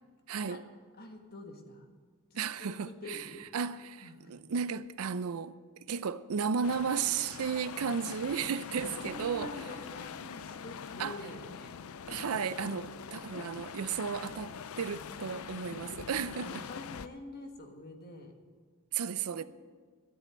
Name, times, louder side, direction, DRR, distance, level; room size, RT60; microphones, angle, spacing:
voice 1, 0.3-0.6 2.4-3.2 3.5-5.6 5.9-9.5 11.0-11.2 12.1-16.6 18.9-19.4, right 6 dB, 85° right, 0.5 m, -34 dB
voice 2, 1.0-1.9 2.3-3.5 4.0-4.4 8.9-11.8 12.8-12.9 16.1-18.3 19.4-19.5, left 1 dB, 45° left, 1.5 m, -47 dB
sound 1, 6.6-17.1, left 6 dB, 75° left, 0.5 m, -43 dB
13.0 x 7.6 x 7.7 m
head